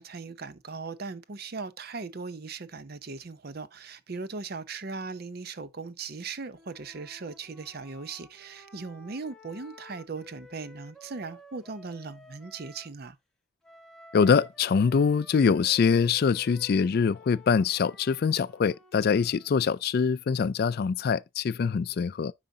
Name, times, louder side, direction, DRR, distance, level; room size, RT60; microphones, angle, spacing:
voice 1, 0.0-13.2, right 4 dB, 50° right, 0.7 m, -39 dB
Wind instrument woodwind instrument, 6.5-12.9 13.6-19.7, equal, 5° left, 1.4 m, -53 dB
voice 2, 14.1-22.3, left 6 dB, 50° left, 0.3 m, -24 dB
9.1 x 4.9 x 2.7 m
head